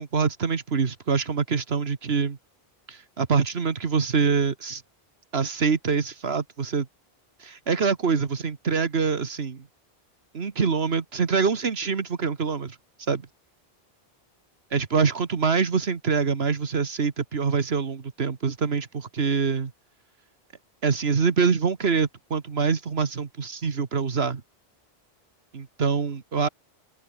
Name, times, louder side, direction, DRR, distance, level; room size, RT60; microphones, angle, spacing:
voice 1, 0.0-2.4 2.9-4.8 5.3-6.9 7.4-9.6 10.3-12.8 13.1-13.2 14.7-19.7 20.8-24.4 25.5-26.5, right 5 dB, 80° right, 1.7 m, -25 dB
open air
omnidirectional pair, 1.0 m